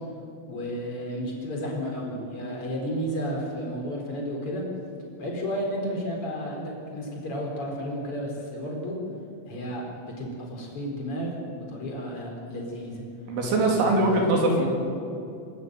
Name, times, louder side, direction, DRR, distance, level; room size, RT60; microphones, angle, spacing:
voice 1, 0.5-4.6 5.2-9.0 9.5-11.3 11.6-13.0 13.6-14.3, equal, 30° left, -1 dB, 4.6 m, -32 dB
voice 2, 13.3-14.7, right 2 dB, 75° right, 1 dB, 5.5 m, -22 dB
25.5 x 13.0 x 9.3 m, 2.7 s
omnidirectional pair, 5.4 m